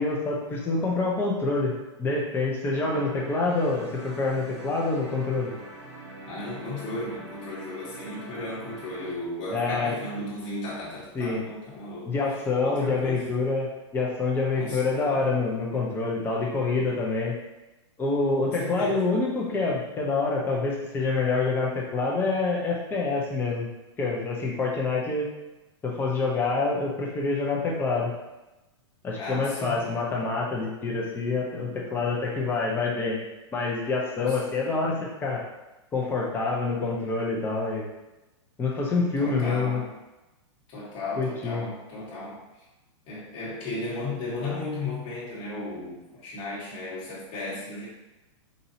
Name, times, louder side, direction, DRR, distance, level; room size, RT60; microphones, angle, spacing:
voice 1, 0.0-5.5 9.5-10.0 11.1-11.4 12.0-17.3 18.0-23.7 24.0-25.3 25.8-28.1 29.0-33.2 33.5-35.4 35.9-37.8 38.6-39.8 41.2-41.7, left 3 dB, 15° left, -3 dB, 0.7 m, -26 dB
sound 1, 2.7-9.1, right 1 dB, 75° right, 1.2 m, -43 dB
voice 2, 6.3-12.1 12.6-13.3 14.5-15.3 18.4-19.1 29.2-29.9 34.2-34.4 34.7-35.0 39.2-39.9 40.7-42.4 43.1-47.9, left 2 dB, 35° left, -7 dB, 1.5 m, -35 dB
4.1 x 2.7 x 2.7 m, 1.0 s
hypercardioid pair, 140°, 16 cm